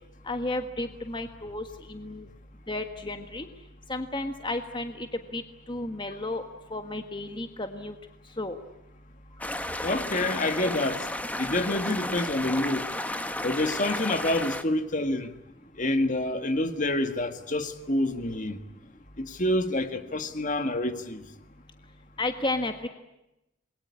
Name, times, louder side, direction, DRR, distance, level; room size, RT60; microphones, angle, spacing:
voice 1, 0.2-2.3 2.7-3.5 3.9-5.4 5.7-6.4 6.7-7.9 8.4-8.6 22.2-22.9, left 2 dB, 25° left, 1.5 m, -32 dB
sound 1, 9.4-14.6, left 1 dB, 10° left, 1.4 m, -33 dB
voice 2, 9.8-11.1 11.4-12.9 13.4-15.3 15.8-18.6 19.2-21.2, left 1 dB, 40° left, 1.8 m, -27 dB
27.5 x 22.0 x 9.7 m
head